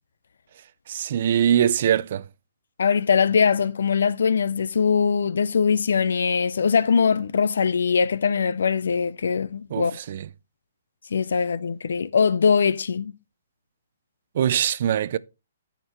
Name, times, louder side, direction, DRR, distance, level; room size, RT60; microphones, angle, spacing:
voice 1, 0.9-2.2 9.7-10.3 14.3-15.2, right 9 dB, 40° right, 0.4 m, -22 dB
voice 2, 2.8-10.0 11.1-13.1, left 6 dB, 75° left, 0.5 m, -21 dB
15.5 x 5.8 x 3.0 m
hypercardioid pair, 175°, 0 cm